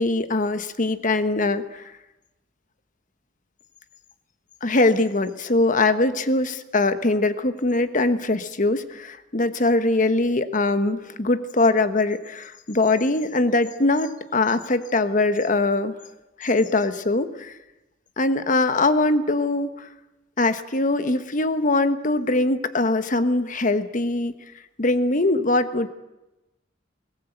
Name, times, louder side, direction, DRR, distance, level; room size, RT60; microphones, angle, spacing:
voice 1, 0.0-1.8 4.6-15.9 16.4-17.5 18.2-19.9 20.4-24.3 24.8-25.9, left 2 dB, 45° left, 11 dB, 1.2 m, -22 dB
21.0 x 18.5 x 8.0 m, 1.0 s
head